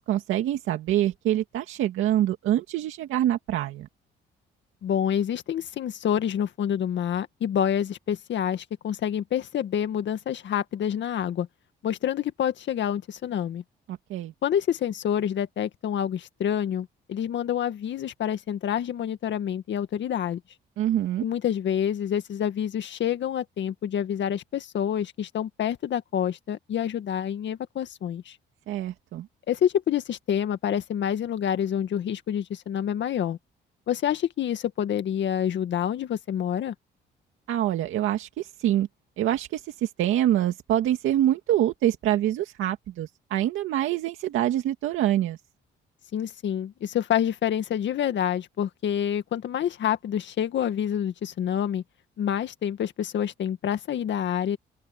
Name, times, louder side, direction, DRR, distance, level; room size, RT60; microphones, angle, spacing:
voice 1, 0.0-3.9 14.1-14.3 20.8-21.2 28.7-29.3 37.5-38.9 39.2-45.4, right 12 dB, 85° right, 2.2 m, -25 dB
voice 2, 4.8-11.5 11.8-13.6 14.4-20.4 21.2-28.4 29.5-33.4 33.9-36.7 46.1-51.8 52.2-54.6, left 9 dB, 65° left, 1.9 m, -27 dB
open air
cardioid pair, 90°, 20 cm